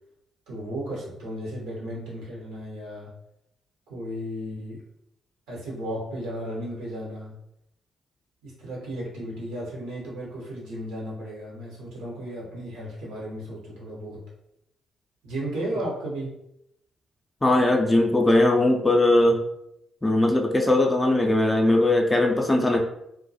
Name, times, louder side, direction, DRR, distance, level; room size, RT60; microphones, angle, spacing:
voice 1, 0.5-3.1 3.9-4.8 5.5-7.4 8.4-14.2 15.2-16.4, right 1 dB, 70° right, -4 dB, 0.8 m, -34 dB
voice 2, 17.4-19.4 20.0-22.8, left 1 dB, 20° left, 1 dB, 0.4 m, -20 dB
2.2 x 2.1 x 2.7 m, 0.79 s
figure-of-eight pair, 40°, 0 cm